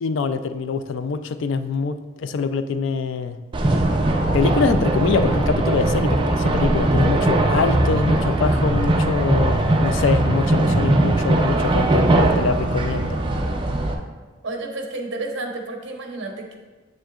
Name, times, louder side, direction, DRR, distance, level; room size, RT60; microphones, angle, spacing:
voice 1, 0.0-3.4 4.3-13.2, left 4 dB, 60° left, 11 dB, 0.3 m, -24 dB
sound 1, 3.5-13.9, right 2 dB, 25° right, 0.4 m, -20 dB
voice 2, 14.4-16.6, right 2 dB, 55° right, 2 dB, 0.9 m, -31 dB
7.3 x 6.3 x 2.4 m, 1.3 s
head